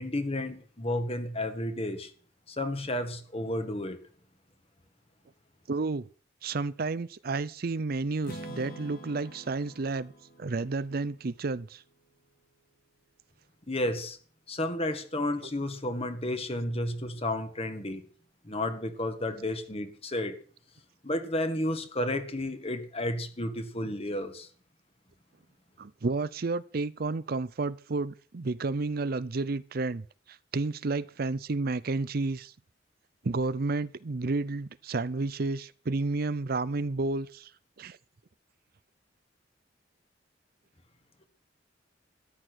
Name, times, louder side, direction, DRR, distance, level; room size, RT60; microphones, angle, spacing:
voice 1, 0.0-2.1 2.5-4.0 13.7-14.2 14.5-18.0 18.4-20.4 21.0-24.5, left 1 dB, 35° left, 1.9 m, -32 dB
voice 2, 5.7-6.1 6.4-10.1 10.4-11.8 23.8-23.9 25.8-32.5 33.2-37.5 37.8-38.0, right 3 dB, 55° right, 0.6 m, -31 dB
Strum, 8.2-12.2, equal, 50° left, 4.2 m, -47 dB
13.5 x 11.0 x 6.3 m
head